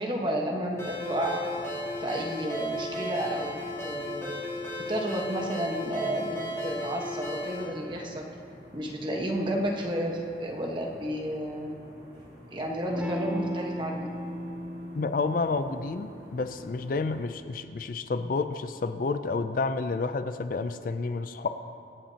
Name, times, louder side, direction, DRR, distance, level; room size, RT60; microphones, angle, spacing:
voice 1, 0.0-1.5 2.0-4.3 4.9-8.3 8.7-11.8 12.5-14.1, right 1 dB, 25° right, 0 dB, 1.2 m, -31 dB
sound 1, 0.6-17.3, equal, 60° right, 3.0 m, -51 dB
Ringtone, 0.8-7.7, equal, 15° left, 2.9 m, -35 dB
Electric guitar / Strum, 12.9-18.0, equal, 10° right, 0.8 m, -37 dB
voice 2, 15.0-21.5, left 3 dB, 50° left, 10 dB, 0.4 m, -30 dB
24.0 x 8.7 x 2.8 m, 2.6 s
head